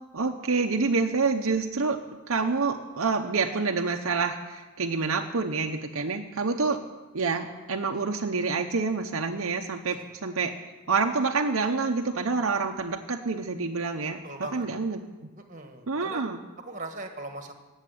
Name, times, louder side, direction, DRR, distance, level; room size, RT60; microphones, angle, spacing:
voice 1, 0.1-2.0 2.3-6.8 7.1-10.5 10.9-14.2 14.5-15.0 15.9-16.4, right 4 dB, 70° right, 3 dB, 0.8 m, -27 dB
voice 2, 14.2-14.7 15.5-16.2 16.6-17.5, right 2 dB, 35° right, 5 dB, 1.5 m, -39 dB
17.0 x 7.4 x 9.2 m, 1.2 s
head